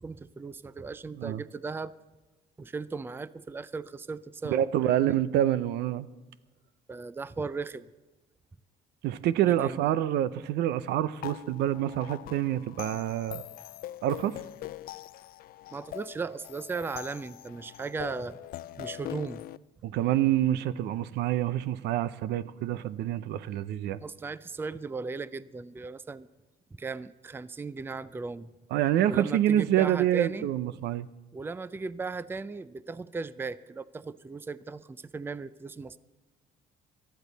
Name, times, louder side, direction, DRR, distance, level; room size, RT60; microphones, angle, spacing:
voice 1, 0.0-1.9 2.6-5.2 6.9-7.9 9.6-9.9 15.7-18.4 18.8-19.5 24.0-26.3 26.8-28.5 29.1-30.5 31.3-36.0, right 4 dB, 15° right, 17 dB, 0.4 m, -37 dB
voice 2, 4.4-6.1 9.0-13.4 14.0-14.3 19.8-24.0 28.7-31.1, right 12 dB, 80° right, 16 dB, 0.6 m, -27 dB
sound 1, 11.2-19.6, left 14 dB, 60° left, 0.4 m, -43 dB
18.5 x 13.0 x 4.1 m, 1.2 s
cardioid pair, 110°, 17 cm